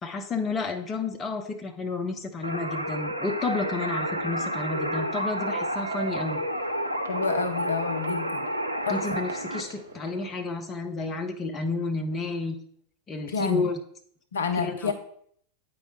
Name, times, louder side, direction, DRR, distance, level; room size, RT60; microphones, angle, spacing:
voice 1, 0.0-6.4 8.9-12.6 13.1-13.8 14.6-14.9, left 3 dB, 20° left, 3 dB, 0.7 m, -31 dB
sound 1, 2.4-9.6, equal, 85° right, 0.5 m, -30 dB
sound 2, 5.3-10.6, right 3 dB, 65° right, 1.0 m, -46 dB
voice 2, 7.1-8.5 8.9-9.0 13.3-13.7 14.3-14.9, left 5 dB, 70° left, 7 dB, 0.5 m, -29 dB
8.4 x 4.6 x 2.9 m, 0.63 s
figure-of-eight pair, 90°, 0 cm